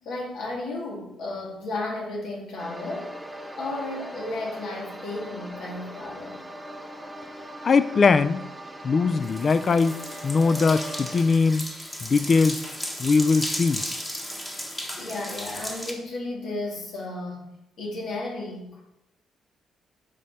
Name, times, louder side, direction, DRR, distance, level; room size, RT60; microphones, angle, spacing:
voice 1, 0.0-3.1 3.6-6.4 15.0-18.8, left 2 dB, 75° left, -1 dB, 2.0 m, -34 dB
sound 1, 2.6-11.2, equal, 5° right, 0.8 m, -40 dB
voice 2, 7.6-8.5 8.8-11.7 12.0-12.6 13.0-13.8, left 4 dB, 45° left, 14 dB, 0.4 m, -21 dB
sound 2, 9.2-15.9, equal, 15° left, 1.3 m, -35 dB
7.4 x 5.1 x 4.2 m, 0.87 s
cardioid pair, 90°, 0 cm